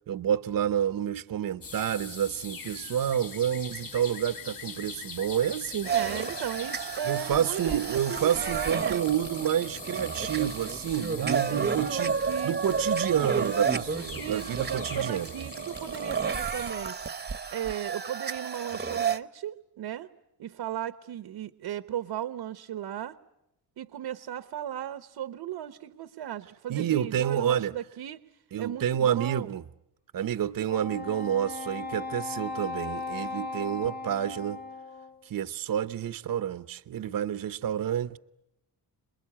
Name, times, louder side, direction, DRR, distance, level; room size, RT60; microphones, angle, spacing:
voice 1, 0.1-5.9 7.1-12.2 12.4-15.3 26.7-27.7 28.5-29.6 30.1-34.6 35.3-38.2, right 10 dB, 55° right, 0.9 m, -29 dB
sound 1, 1.6-16.7, left 5 dB, 55° left, 4.2 m, -43 dB
sound 2, 5.8-19.2, right 6 dB, 25° right, 1.1 m, -31 dB
voice 2, 5.8-9.0 11.2-12.6 14.2-17.0 17.5-20.1 20.4-23.2 23.8-28.2 28.6-29.5, right 11 dB, 80° right, 1.1 m, -36 dB
Wind instrument woodwind instrument, 30.7-35.3, left 3 dB, 20° left, 1.8 m, -37 dB
27.5 x 21.5 x 8.6 m
cardioid pair, 120°, 40 cm